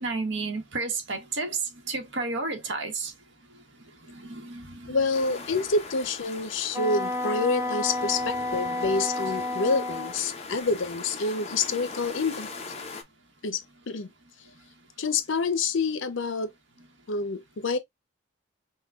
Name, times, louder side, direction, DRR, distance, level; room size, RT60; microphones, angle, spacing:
voice 1, 0.0-1.6 1.9-3.1 4.1-5.0 8.2-8.3 9.2-9.4, right 3 dB, 70° right, 1.0 m, -32 dB
voice 2, 4.9-12.5 13.4-14.1 15.0-16.5 17.1-17.8, left 4 dB, 80° left, 0.6 m, -27 dB
sound 1, 5.1-13.0, left 4 dB, 30° left, 0.7 m, -41 dB
Wind instrument woodwind instrument, 6.7-10.2, left 2 dB, 15° right, 0.3 m, -30 dB
5.6 x 2.2 x 2.3 m
head